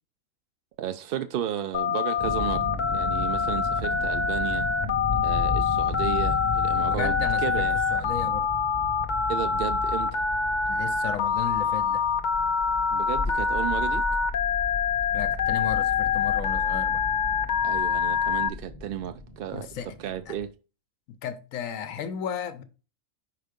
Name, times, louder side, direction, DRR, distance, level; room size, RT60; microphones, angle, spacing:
voice 1, 0.8-4.7 5.2-7.8 9.3-10.2 12.9-14.0 17.6-19.7 20.0-20.5, right 10 dB, 65° right, 0.5 m, -33 dB
Telephone, 1.7-18.5, left 6 dB, 50° left, 0.6 m, -25 dB
sound 1, 2.2-20.5, left 2 dB, 30° left, 0.9 m, -35 dB
voice 2, 6.8-8.5 10.7-12.1 15.1-17.1 19.5-20.0 20.3-20.4 21.1-22.6, left 8 dB, 75° left, 1.1 m, -34 dB
5.7 x 4.5 x 5.1 m
omnidirectional pair, 1.4 m